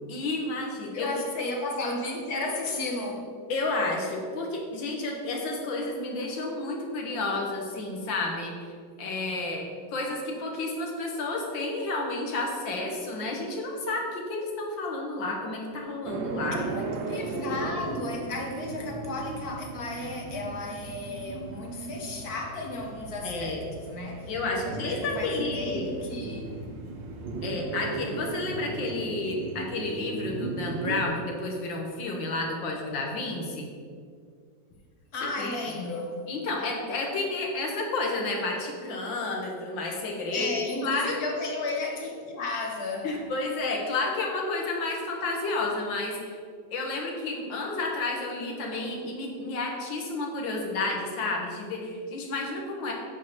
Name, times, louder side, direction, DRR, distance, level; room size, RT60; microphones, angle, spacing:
voice 1, 0.1-1.1 3.5-8.5 9.0-16.6 23.2-23.6 24.3-25.9 27.4-33.7 35.4-35.6 36.3-40.5 40.8-41.2 43.0-46.4 46.7-52.9, left 2 dB, 80° left, 0 dB, 2.0 m, -31 dB
voice 2, 0.9-3.3 16.5-24.3 24.7-26.5 35.1-36.3 40.3-43.1, left 2 dB, 55° left, 0 dB, 1.5 m, -34 dB
sound 1, 16.0-31.1, right 3 dB, 80° right, 1.6 m, -36 dB
8.4 x 3.8 x 6.5 m, 2.1 s
omnidirectional pair, 2.0 m